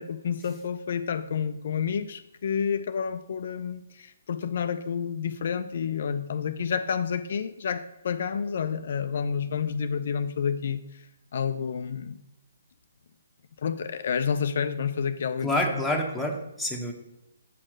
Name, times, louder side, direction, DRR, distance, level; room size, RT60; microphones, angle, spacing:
voice 1, 0.0-11.1 11.3-12.2 13.6-15.5, left 7 dB, 55° left, 9 dB, 0.4 m, -29 dB
voice 2, 15.4-16.9, left 1 dB, ahead, -2 dB, 1.1 m, -27 dB
7.4 x 4.4 x 6.3 m, 0.90 s
figure-of-eight pair, 140°, 0 cm